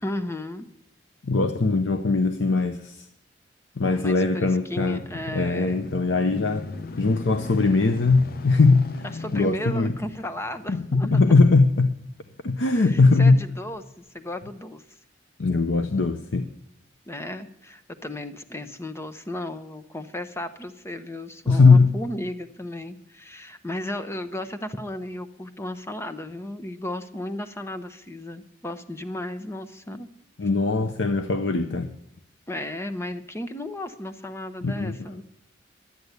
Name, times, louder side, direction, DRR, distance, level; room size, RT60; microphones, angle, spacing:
voice 1, 0.0-0.7 3.8-5.9 9.1-11.4 12.7-14.8 17.1-30.1 32.5-35.2, left 1 dB, 15° left, 10 dB, 0.8 m, -34 dB
voice 2, 1.2-3.1 3.8-5.0 5.3-6.6 7.0-9.0 9.3-9.9 10.7-11.9 12.4-13.4 15.4-16.5 21.5-21.9 30.4-32.0 34.6-34.9, left 3 dB, 90° left, 8 dB, 0.7 m, -20 dB
sound 1, 4.4-13.0 13.7-13.8, left 3 dB, 55° left, 0.6 m, -39 dB
12.5 x 9.4 x 8.1 m, 0.79 s
head